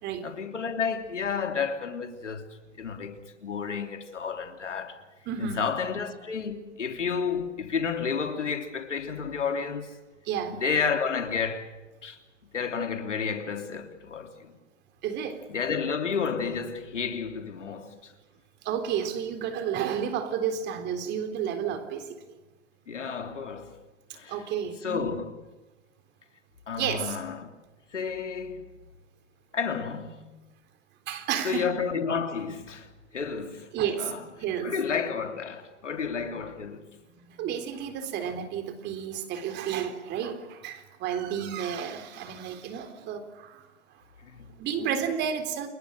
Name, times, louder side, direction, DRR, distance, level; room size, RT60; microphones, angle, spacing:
voice 1, 0.2-5.0 5.4-10.0 10.5-12.2 12.5-14.5 15.5-18.1 22.9-23.8 24.1-24.4 24.8-25.3 26.7-27.5 27.9-28.7 29.5-30.4 31.4-33.7 34.0-34.2 34.6-36.9 44.2-44.5, left 6 dB, 85° left, 3.3 m, -31 dB
voice 2, 5.3-5.6 10.3-10.6 15.0-15.5 18.6-22.3 24.3-25.2 26.8-27.2 31.1-31.7 33.7-34.7 37.2-43.7 44.6-45.7, right 8 dB, 30° right, 3.8 m, -31 dB
30.0 x 21.5 x 6.6 m
hypercardioid pair, 125°, 35 cm